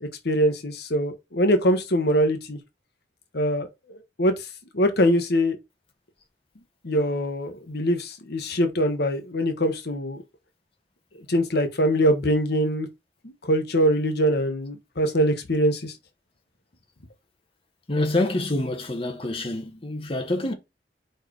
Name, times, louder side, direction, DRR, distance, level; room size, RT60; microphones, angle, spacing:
voice 1, 0.0-2.6 3.3-4.5 4.7-5.6 6.8-10.2 11.3-12.9 13.2-16.0, equal, 60° left, 1.1 m, -23 dB
voice 2, 17.9-20.5, left 2 dB, 30° left, 1.3 m, -26 dB
4.9 x 4.6 x 4.6 m
head